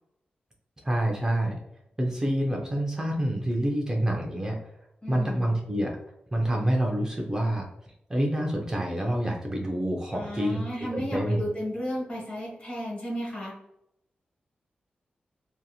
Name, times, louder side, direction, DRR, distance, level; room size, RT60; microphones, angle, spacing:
voice 1, 0.8-1.6 2.0-4.6 5.1-6.0 6.3-7.7 8.1-10.7 10.9-11.4, right 1 dB, 20° right, 0 dB, 0.4 m, -27 dB
voice 2, 5.0-5.5 10.1-13.5, equal, 35° left, -4 dB, 1.3 m, -33 dB
2.8 x 2.6 x 2.3 m, 0.82 s
wide cardioid pair, 135°, 3 cm